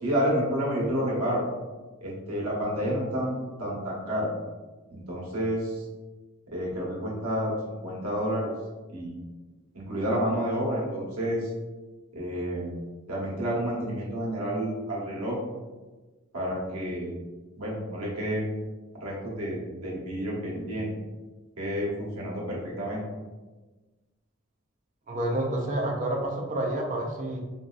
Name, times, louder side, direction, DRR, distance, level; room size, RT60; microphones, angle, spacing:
voice 1, 0.0-1.4 2.0-4.3 4.9-5.8 6.5-8.5 8.9-9.1 9.7-11.5 12.1-12.8 13.1-15.4 16.3-17.1 17.5-18.5 19.0-20.9 21.6-23.0, equal, 85° right, -5 dB, 1.0 m, -30 dB
voice 2, 25.1-27.4, right 1 dB, 35° right, 0 dB, 0.4 m, -29 dB
3.0 x 2.6 x 2.3 m, 1.2 s
head